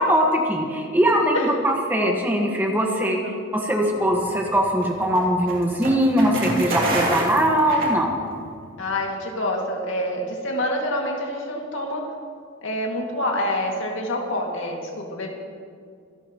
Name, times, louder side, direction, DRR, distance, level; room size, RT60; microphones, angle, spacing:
voice 1, 0.0-3.2 3.5-8.1, equal, 10° right, 0 dB, 1.4 m, -21 dB
sound 1, 4.1-8.5, right 2 dB, 45° right, 2.7 m, -28 dB
voice 2, 8.8-12.1 12.6-15.3, left 1 dB, 70° left, 0 dB, 2.2 m, -27 dB
25.0 x 12.0 x 3.0 m, 2.2 s
head